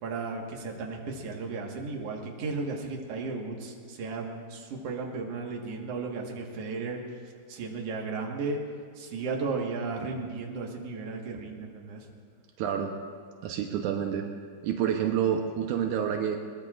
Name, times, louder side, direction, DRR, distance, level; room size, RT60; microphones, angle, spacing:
voice 1, 0.0-7.0 7.5-8.6 9.0-12.1, right 4 dB, 55° right, 0 dB, 2.0 m, -34 dB
voice 2, 12.6-12.9 13.4-14.3 14.6-16.4, right 9 dB, 85° right, 3 dB, 1.8 m, -28 dB
22.0 x 20.5 x 2.5 m, 2.2 s
omnidirectional pair, 4.7 m